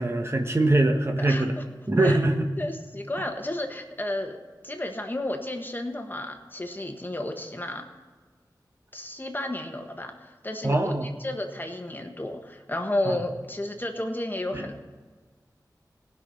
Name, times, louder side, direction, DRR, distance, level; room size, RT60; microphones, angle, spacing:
voice 1, 0.0-1.5 1.9-2.5 10.6-11.0 13.1-13.2 14.5-14.6, right 2 dB, 35° right, 3 dB, 1.3 m, -23 dB
voice 2, 2.6-4.4 4.6-7.9 8.9-14.8, left 1 dB, 25° left, 4 dB, 1.4 m, -32 dB
17.5 x 6.1 x 5.5 m, 1.4 s
cardioid pair, 40°, 8 cm